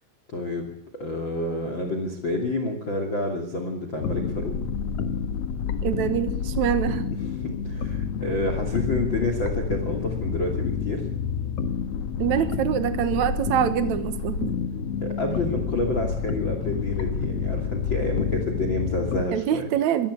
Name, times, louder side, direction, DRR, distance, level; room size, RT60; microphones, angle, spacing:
voice 1, 0.3-0.7 1.0-4.5 7.4-11.0 15.0-19.7, left 1 dB, 30° left, 5 dB, 2.8 m, -29 dB
sound 1, 4.0-19.2, left 6 dB, 65° left, 1.6 m, -29 dB
voice 2, 5.8-7.1 12.2-14.5 19.3-20.1, right 10 dB, 80° right, 11 dB, 1.6 m, -25 dB
23.5 x 16.0 x 8.4 m, 0.66 s
omnidirectional pair, 5.1 m